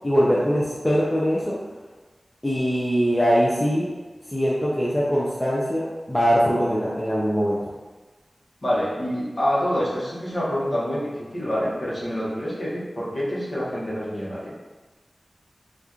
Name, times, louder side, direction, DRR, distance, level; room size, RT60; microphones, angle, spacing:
voice 1, 0.0-1.6 2.4-3.9 4.3-7.6, equal, 15° left, -6 dB, 0.5 m, -22 dB
voice 2, 8.6-14.5, equal, 50° left, -8 dB, 1.0 m, -26 dB
2.9 x 2.4 x 3.6 m, 1.2 s
wide cardioid pair, 80°, 0 cm